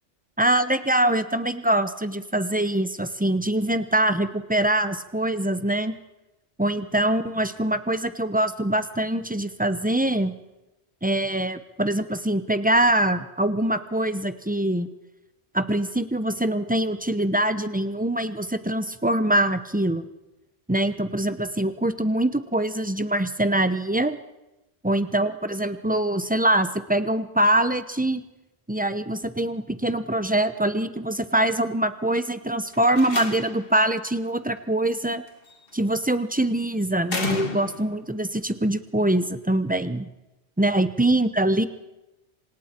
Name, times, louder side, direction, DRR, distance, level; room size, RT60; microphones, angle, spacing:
voice 1, 0.4-5.9 6.6-10.3 11.0-14.9 15.5-20.1 20.7-24.2 24.8-28.2 28.7-35.2 35.7-40.1 40.6-41.7, right 1 dB, 10° right, 10 dB, 0.8 m, -24 dB
Slam, 32.7-33.8 35.3-35.7 37.1-38.0, left 3 dB, 50° left, 2.0 m, -32 dB
27.0 x 27.0 x 4.5 m, 0.97 s
omnidirectional pair, 1.2 m